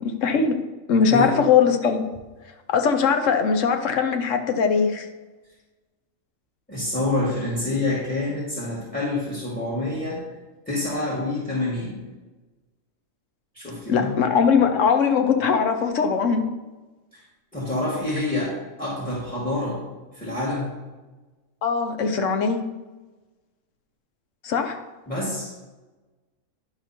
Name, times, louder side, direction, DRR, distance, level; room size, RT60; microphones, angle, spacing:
voice 1, 0.0-0.6 0.9-2.0 2.7-5.1 13.9-16.5 21.6-22.6 24.4-24.8, left 6 dB, 65° left, 7 dB, 1.1 m, -20 dB
voice 2, 6.7-10.2 10.7-12.0 13.5-14.2 17.1-17.2 17.5-19.8 20.1-20.7 25.1-25.7, left 2 dB, 5° left, -7 dB, 1.9 m, -27 dB
10.5 x 5.0 x 4.4 m, 1.2 s
omnidirectional pair, 1.4 m